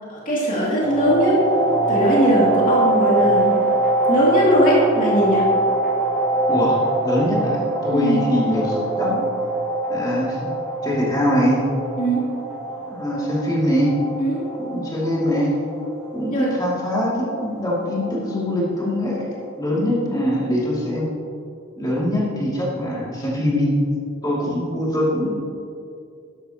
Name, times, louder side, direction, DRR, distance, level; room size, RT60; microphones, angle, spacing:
voice 1, 0.1-1.4 1.9-3.6 4.1-5.5 7.9-8.3 12.0-12.3 14.2-14.5 16.3-16.5, right 1 dB, 40° left, -6 dB, 2.6 m, -19 dB
sound 1, 0.8-19.4, right 2 dB, 5° right, 2.0 m, -24 dB
voice 2, 6.5-9.2 9.9-10.5 10.8-11.6 12.9-13.9 14.6-15.5 16.1-16.3 16.6-19.2 19.6-21.1 21.8-23.7 24.2-25.3, equal, 20° left, -6 dB, 2.5 m, -23 dB
13.0 x 11.0 x 2.9 m, 2.6 s
head